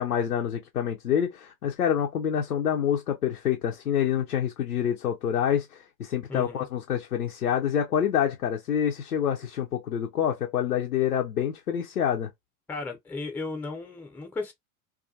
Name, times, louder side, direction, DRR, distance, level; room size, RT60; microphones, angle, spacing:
voice 1, 0.0-12.3, left 9 dB, 90° left, 0.6 m, -27 dB
voice 2, 6.3-6.7 12.7-14.5, left 3 dB, 5° left, 0.6 m, -35 dB
2.3 x 2.2 x 2.6 m
figure-of-eight pair, 80°, 44 cm